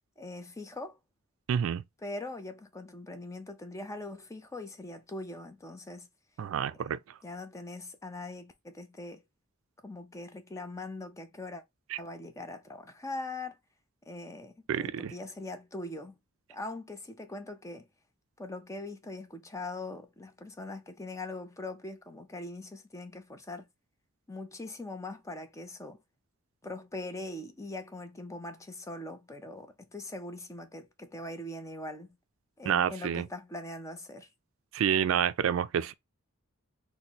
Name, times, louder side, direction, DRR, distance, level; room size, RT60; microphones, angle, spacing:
voice 1, 0.2-1.0 2.0-6.1 6.8-6.9 7.2-9.2 9.8-11.6 12.0-13.6 14.1-16.1 16.5-17.9 18.4-23.7 24.3-26.0 26.6-32.2 32.6-34.3, left 2 dB, 15° left, 0.5 m, -41 dB
voice 2, 1.5-1.8 6.4-7.0 11.9-12.0 14.7-15.1 32.7-33.3 34.7-35.9, right 8 dB, 65° right, 0.3 m, -28 dB
4.1 x 2.1 x 2.9 m
head